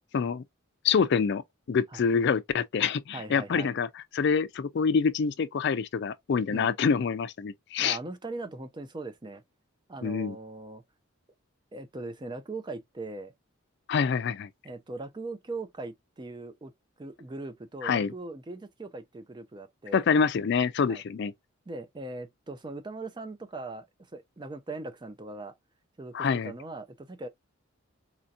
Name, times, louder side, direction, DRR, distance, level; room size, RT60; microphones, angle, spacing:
voice 1, 0.1-0.4 0.8-1.4 1.7-3.9 4.1-8.0 10.0-10.4 13.9-14.5 17.8-18.1 19.9-21.3 26.1-26.5, left 6 dB, 55° left, 0.4 m, -26 dB
voice 2, 3.1-3.7 6.5-6.7 7.8-9.4 9.9-10.8 11.7-13.3 14.6-16.7 17.0-20.1 20.9-21.0 21.7-23.9 24.1-25.5 26.0-27.3, right 2 dB, 20° right, 0.4 m, -40 dB
4.2 x 2.7 x 2.3 m
head